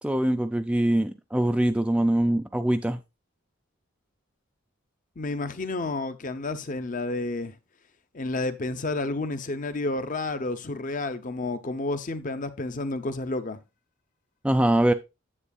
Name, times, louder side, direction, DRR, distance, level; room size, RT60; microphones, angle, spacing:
voice 1, 0.0-3.0 14.4-14.9, right 1 dB, 5° right, 0.3 m, -23 dB
voice 2, 5.2-7.6 8.1-13.6, left 2 dB, 35° left, 0.7 m, -30 dB
9.8 x 7.8 x 2.3 m
head